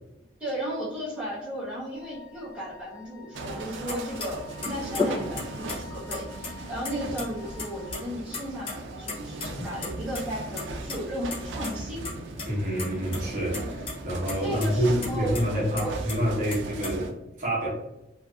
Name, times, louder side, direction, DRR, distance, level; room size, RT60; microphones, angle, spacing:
voice 1, 0.4-12.0 14.4-15.9, equal, 5° right, -9 dB, 0.7 m, -35 dB
Wind instrument woodwind instrument, 1.9-8.0, left 6 dB, 85° left, 1.2 m, -50 dB
sound 1, 3.3-17.1, right 2 dB, 90° right, 0.4 m, -38 dB
sound 2, 3.9-4.0 4.2-4.3 4.6-5.8 6.1-6.9 7.2-7.3 7.6-8.0 8.3-8.7 9.1-10.2 10.6-11.0 11.3-11.4 11.6-11.7 12.0-12.5 12.8-13.2 13.5-13.9 14.3-14.4 14.6-14.7 15.0-16.2 16.5-16.9, left 3 dB, 30° left, 0.6 m, -32 dB
voice 2, 12.4-17.7, equal, 45° right, -5 dB, 0.9 m, -28 dB
2.6 x 2.5 x 2.3 m, 0.93 s
head